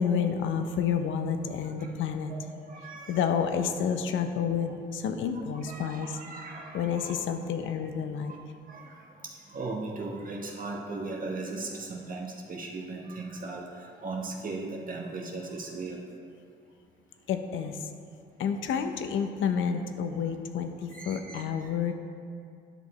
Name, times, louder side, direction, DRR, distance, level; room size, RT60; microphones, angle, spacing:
voice 1, 0.0-2.3 3.1-6.2 6.7-8.3 17.3-17.9 18.4-21.9, left 7 dB, 80° left, 8 dB, 0.7 m, -29 dB
voice 2, 2.3-3.2 5.6-7.2 7.8-7.9 8.3-8.4 8.7-16.0 20.9-21.9, right 3 dB, 45° right, -1 dB, 1.1 m, -38 dB
10.5 x 6.3 x 4.2 m, 2.4 s
cardioid pair, 90°, 20 cm